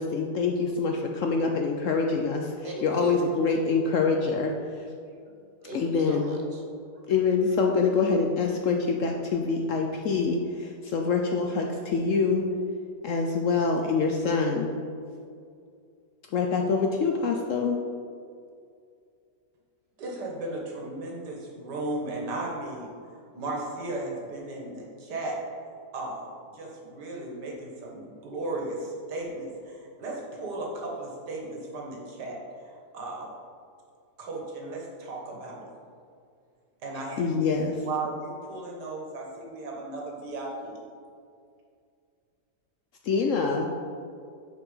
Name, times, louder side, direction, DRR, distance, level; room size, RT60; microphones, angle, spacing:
voice 1, 0.0-4.5 5.7-6.3 7.1-12.4 13.0-14.7 16.3-17.8 37.2-37.8 43.0-43.7, left 4 dB, 65° left, 2 dB, 0.8 m, -25 dB
voice 2, 2.6-3.2 5.0-6.6, right 1 dB, 35° right, 0 dB, 1.1 m, -39 dB
voice 3, 20.0-22.9 23.3-25.4 25.9-26.3 26.5-32.7 32.9-33.3 34.2-35.7 36.8-37.4 37.9-40.8, right 2 dB, 80° right, -1 dB, 2.0 m, -35 dB
6.3 x 5.3 x 5.5 m, 2.3 s
omnidirectional pair, 1.8 m